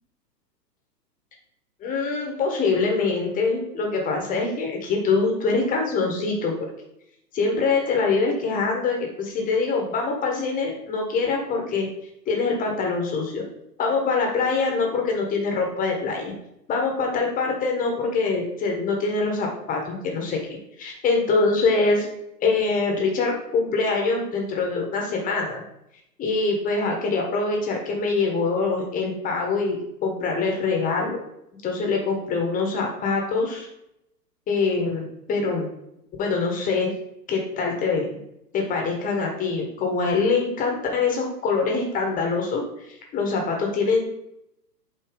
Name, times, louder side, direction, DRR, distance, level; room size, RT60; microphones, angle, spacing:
voice 1, 1.8-6.7 7.3-11.9 12.3-13.4 13.8-16.3 16.7-20.4 20.8-22.1 22.4-25.6 26.2-31.2 31.6-33.7 34.5-35.7 36.2-36.9 37.3-38.1 38.5-42.6 42.9-44.0, left 4 dB, 15° left, 1 dB, 1.2 m, -24 dB
8.0 x 3.1 x 5.0 m, 0.80 s
figure-of-eight pair, 120°, 50 cm